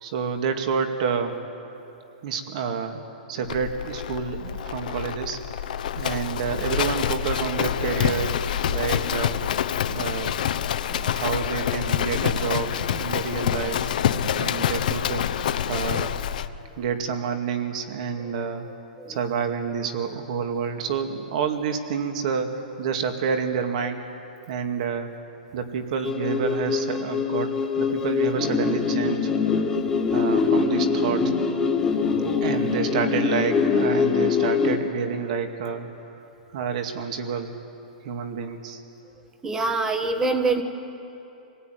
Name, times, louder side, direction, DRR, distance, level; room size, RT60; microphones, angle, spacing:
voice 1, 0.0-1.4 2.2-3.0 3.3-5.4 6.0-8.4 8.7-9.4 9.9-10.4 11.0-13.9 14.3-15.3 15.7-16.2 16.8-18.7 19.1-24.2 24.5-25.1 25.5-29.6 30.1-31.3 32.4-35.9 36.5-37.6 38.0-38.8, right 6 dB, 50° right, 6 dB, 2.2 m, -28 dB
Livestock farm animals working animals, 3.5-16.5, left 9 dB, 60° left, 0.9 m, -26 dB
sound 1, 26.0-34.8, left 5 dB, 10° left, 1.8 m, -23 dB
voice 2, 28.0-28.3 32.1-32.5 35.3-35.4 39.4-40.6, right 3 dB, 10° right, 6 dB, 1.3 m, -27 dB
26.0 x 18.5 x 9.3 m, 2.9 s
hypercardioid pair, 160°, 5 cm